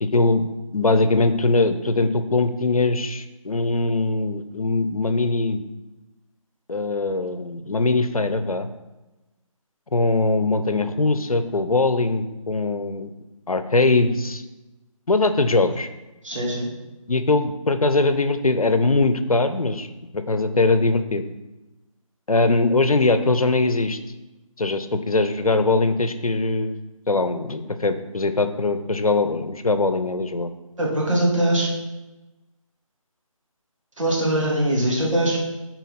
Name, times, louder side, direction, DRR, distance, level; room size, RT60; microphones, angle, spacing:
voice 1, 0.0-5.6 6.7-8.7 9.9-13.1 13.5-14.4 15.1-15.9 17.1-19.9 20.1-21.2 22.3-24.0 24.6-26.8 27.1-30.5, left 3 dB, 85° left, 10 dB, 0.7 m, -21 dB
voice 2, 16.2-16.7 30.8-31.7 34.0-35.4, right 1 dB, 60° right, -3 dB, 2.4 m, -22 dB
8.1 x 4.6 x 4.2 m, 1.1 s
figure-of-eight pair, 165°, 18 cm